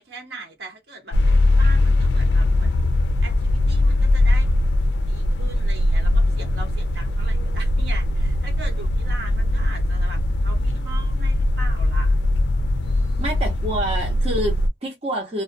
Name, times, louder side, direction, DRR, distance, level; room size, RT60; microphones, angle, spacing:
voice 1, 0.0-2.9 3.2-4.5 5.0-12.2 12.8-13.5, right 2 dB, 65° right, 1.1 m, -40 dB
sound 1, 1.1-14.7, left 1 dB, 70° left, 0.3 m, -20 dB
voice 2, 13.2-15.4, equal, 30° right, 0.8 m, -27 dB
2.3 x 2.1 x 2.5 m
head